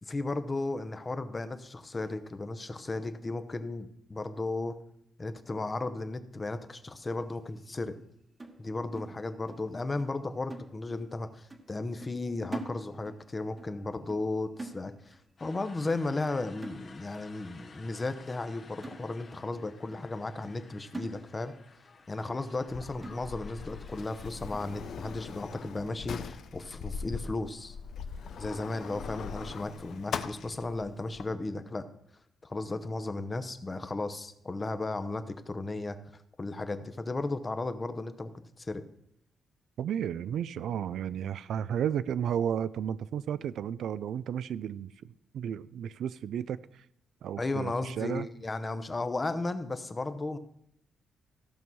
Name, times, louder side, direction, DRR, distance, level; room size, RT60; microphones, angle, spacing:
voice 1, 0.0-4.8 5.2-8.0 8.6-21.5 22.1-27.8 28.4-31.8 32.4-38.3 38.6-38.8 47.4-50.4, left 2 dB, 20° left, 0.8 m, -35 dB
sound 1, 8.4-9.7 10.0-10.2 10.5-11.2 11.5-11.7 12.0-13.3 13.6-13.8 14.1-15.3 15.6-15.8 16.1-16.3 16.6-17.3 17.7-17.8 18.3-18.4 18.8-19.5 19.9-20.0 20.4-20.6 20.9-21.7 22.0-22.1 22.5-22.6 23.0-23.6 24.1-24.2 24.5-24.7, right 2 dB, 20° right, 1.2 m, -44 dB
sound 2, 15.4-24.3, left 4 dB, 40° left, 1.0 m, -55 dB
Sliding door, 22.7-31.2, left 6 dB, 60° left, 0.6 m, -41 dB
voice 2, 39.8-46.8 47.2-48.3, right 9 dB, 75° right, 0.4 m, -33 dB
14.5 x 5.4 x 6.2 m
cardioid pair, 135°, 0 cm